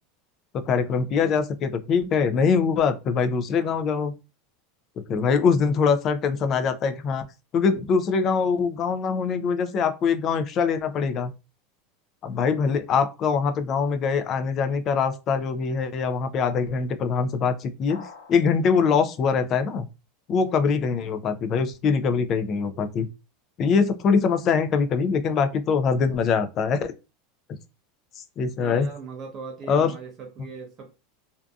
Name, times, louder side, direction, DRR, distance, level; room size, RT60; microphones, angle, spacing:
voice 1, 0.5-4.1 5.1-7.2 7.5-11.3 12.2-18.0 18.3-19.9 20.3-23.1 23.6-26.9 28.4-28.9 29.7-29.9, left 5 dB, 30° left, 0.3 m, -23 dB
sound 1, 17.9-18.5, left 5 dB, 80° left, 0.9 m, -44 dB
voice 2, 28.6-31.0, right 5 dB, 30° right, 0.5 m, -39 dB
2.6 x 2.3 x 2.3 m
supercardioid pair, 155°, 0 cm